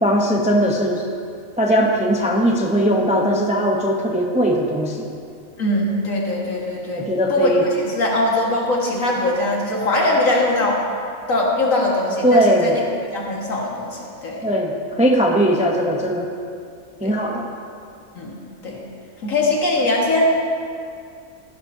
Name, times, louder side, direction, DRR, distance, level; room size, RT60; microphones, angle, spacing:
voice 1, 0.0-1.0 1.6-5.1 7.0-7.6 12.2-12.7 14.4-16.3 17.0-17.5, equal, 5° right, 0 dB, 0.5 m, -19 dB
voice 2, 5.6-10.8 11.3-12.8 13.1-14.5 17.0-17.2 18.1-18.4 18.6-18.9 19.2-20.3, left 2 dB, 65° left, -3 dB, 2.1 m, -21 dB
15.0 x 11.5 x 2.7 m, 2.4 s
omnidirectional pair, 1.5 m